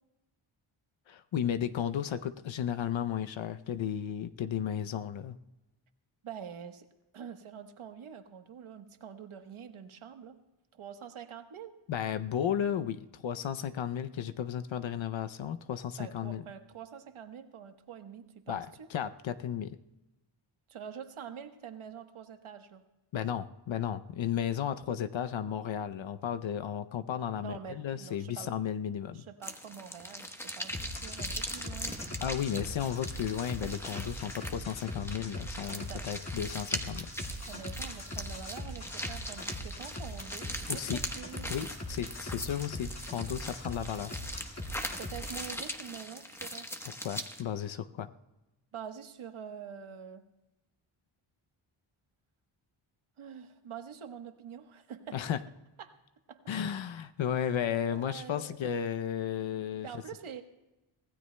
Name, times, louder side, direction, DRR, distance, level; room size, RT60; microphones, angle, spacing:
voice 1, 1.1-5.4 11.9-16.4 18.5-19.8 23.1-29.3 32.2-37.1 40.7-41.0 41.5-44.1 47.0-48.1 55.1-55.4 56.5-59.9, left 9 dB, 65° left, 10 dB, 0.6 m, -34 dB
voice 2, 6.2-6.9 7.1-10.4 10.7-11.7 14.3-14.4 16.0-18.9 20.7-22.8 27.4-28.5 29.1-32.0 35.7-36.1 37.5-41.5 45.0-46.7 48.7-50.2 53.2-55.2 55.8-56.0 56.3-56.4 57.9-58.6 59.8-60.4, right 8 dB, 75° right, 7 dB, 1.3 m, -46 dB
sound 1, 29.4-47.4, equal, 5° left, 1.0 m, -41 dB
sound 2, 30.7-45.5, left 1 dB, 30° left, 1.9 m, -41 dB
25.0 x 17.0 x 2.2 m, 1.0 s
wide cardioid pair, 130°, 50 cm